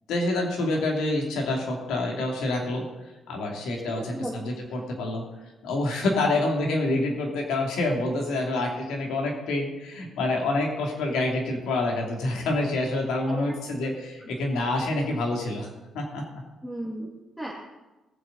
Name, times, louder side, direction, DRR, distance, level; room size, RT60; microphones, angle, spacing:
voice 1, 0.1-2.8 3.3-5.2 5.6-15.7 15.9-16.2, left 2 dB, 85° left, 0 dB, 2.8 m, -27 dB
voice 2, 4.0-4.4 13.3-13.5 16.6-17.5, right 1 dB, ahead, -5 dB, 2.1 m, -35 dB
19.0 x 7.7 x 4.1 m, 1.1 s
cardioid pair, 90°, 0 cm